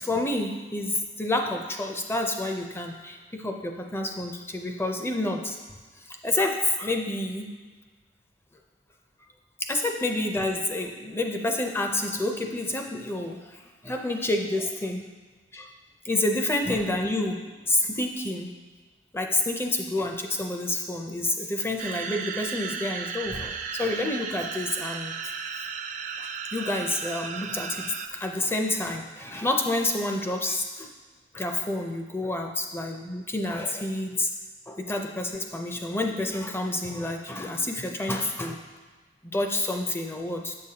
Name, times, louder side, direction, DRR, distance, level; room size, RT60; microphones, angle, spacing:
voice 1, 0.0-5.6 6.2-7.5 9.6-15.1 15.5-15.7 16.0-18.5 19.1-25.3 26.2-30.9 31.3-34.3 34.7-38.6 39.2-40.5, left 2 dB, 15° left, 3 dB, 0.5 m, -29 dB
sound 1, 21.8-28.1, right 6 dB, 45° right, 0.4 m, -35 dB
7.3 x 6.5 x 2.8 m, 1.3 s
head